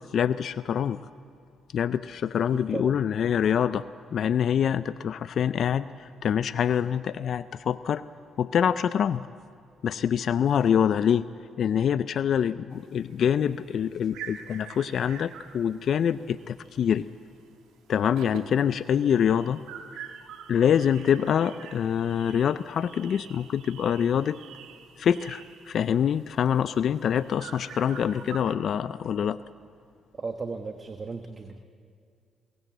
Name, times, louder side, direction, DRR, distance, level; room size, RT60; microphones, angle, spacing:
voice 1, 0.1-1.0 1.7-3.8 4.1-8.0 8.4-9.3 9.8-11.3 11.6-17.1 17.9-19.6 20.5-24.4 25.0-29.4, left 8 dB, 60° left, 14 dB, 0.4 m, -25 dB
sound 1, 12.7-17.1 17.4-17.6 17.9-28.6, right 8 dB, 85° right, 1.7 m, -46 dB
voice 2, 30.1-31.6, right 4 dB, 35° right, 6 dB, 1.2 m, -35 dB
22.5 x 17.5 x 7.9 m, 2.3 s
cardioid pair, 90°, 0 cm